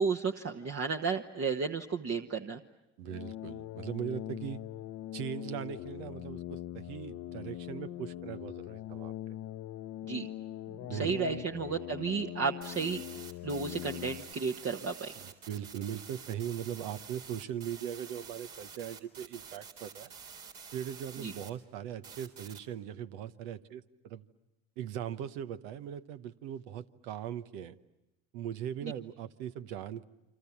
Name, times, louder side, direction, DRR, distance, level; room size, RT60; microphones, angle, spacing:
voice 1, 0.0-2.6 10.1-10.3 10.9-13.0 13.4-15.1 21.2-21.3 28.8-28.9, right 5 dB, 45° right, 4 dB, 1.4 m, -33 dB
sound 1, 3.0-14.3, left 13 dB, 65° left, 0.8 m, -42 dB
voice 2, 3.0-4.6 5.1-9.1 10.9-11.4 15.2-20.1 20.7-24.2 24.8-27.8 28.3-30.0, right 10 dB, 85° right, 11 dB, 1.1 m, -40 dB
sound 2, 12.6-21.5 22.0-22.6, right 6 dB, 65° right, 3.8 m, -49 dB
29.0 x 25.0 x 7.2 m, 0.99 s
supercardioid pair, 70°, 34 cm